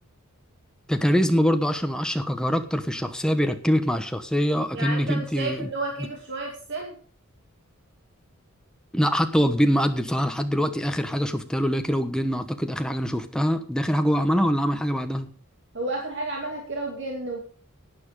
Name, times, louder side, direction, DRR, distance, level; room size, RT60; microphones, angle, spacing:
voice 1, 0.9-5.7 8.9-15.3, equal, 5° left, 7 dB, 1.0 m, -24 dB
voice 2, 4.7-6.9 15.7-17.4, right 2 dB, 55° right, 1 dB, 2.3 m, -31 dB
11.5 x 9.7 x 5.0 m, 0.43 s
head